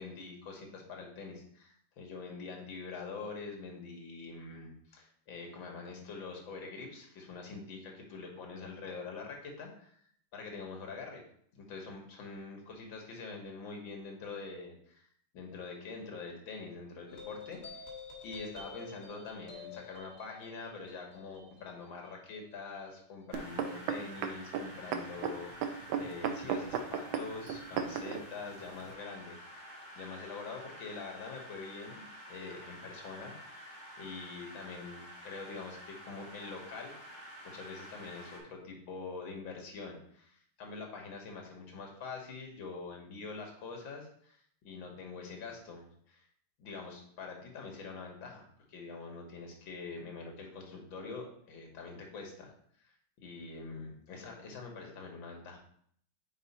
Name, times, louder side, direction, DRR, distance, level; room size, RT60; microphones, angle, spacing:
voice 1, 0.0-10.0 10.3-11.2 11.6-15.1 15.3-17.9 18.2-37.0 37.5-46.3 46.6-52.5 52.8-53.0 53.2-55.6, left 4 dB, 70° left, 2 dB, 2.0 m, -45 dB
sound 1, 17.1-23.9, left 5 dB, 25° left, 1.4 m, -50 dB
sound 2, 23.3-38.4, equal, 5° right, 1.6 m, -50 dB
sound 3, 23.3-28.2 28.9-29.0, right 7 dB, 80° right, 1.4 m, -35 dB
5.5 x 4.6 x 4.1 m, 0.64 s
omnidirectional pair, 2.2 m